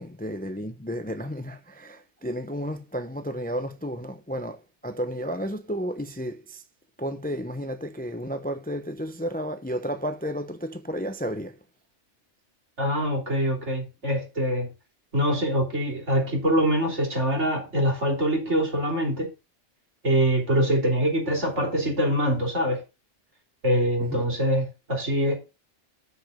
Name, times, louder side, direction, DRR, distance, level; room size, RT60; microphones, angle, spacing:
voice 1, 0.0-6.6 7.0-11.6 24.0-24.3, equal, 10° left, 0.5 m, -32 dB
voice 2, 12.8-14.7 15.1-19.3 20.0-22.8 23.6-25.4, equal, 75° right, 3.6 m, -24 dB
6.5 x 5.0 x 6.5 m
omnidirectional pair, 1.2 m